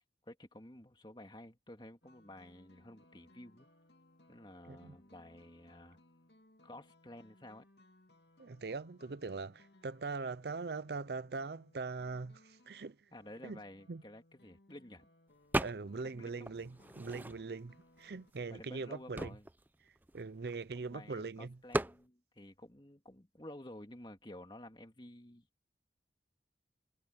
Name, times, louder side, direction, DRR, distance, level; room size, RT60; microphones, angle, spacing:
voice 1, 0.2-3.7 4.3-6.0 6.6-7.7 13.1-15.1 16.0-16.5 18.5-19.5 20.8-25.5, left 1 dB, 25° left, 2.3 m, -52 dB
sound 1, 2.0-18.3, left 1 dB, 70° left, 2.6 m, -66 dB
voice 2, 8.4-13.0 13.4-13.6 13.9-14.0 15.6-19.4 20.1-21.6, right 4 dB, 65° right, 0.6 m, -41 dB
sound 2, 15.5-16.1 16.5-17.7 18.3-18.4 18.6-20.9 21.7-22.0, right 1 dB, 10° right, 0.5 m, -37 dB
head